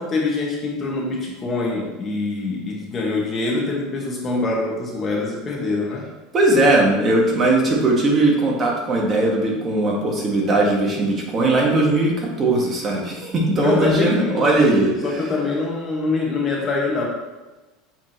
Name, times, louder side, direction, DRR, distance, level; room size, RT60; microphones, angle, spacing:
voice 1, 0.0-6.0 13.6-14.4 14.7-17.0, left 3 dB, 25° left, -2 dB, 1.4 m, -24 dB
voice 2, 6.3-15.3, right 2 dB, 25° right, -2 dB, 1.4 m, -19 dB
7.1 x 4.8 x 2.9 m, 1.1 s
supercardioid pair, 145°, 0 cm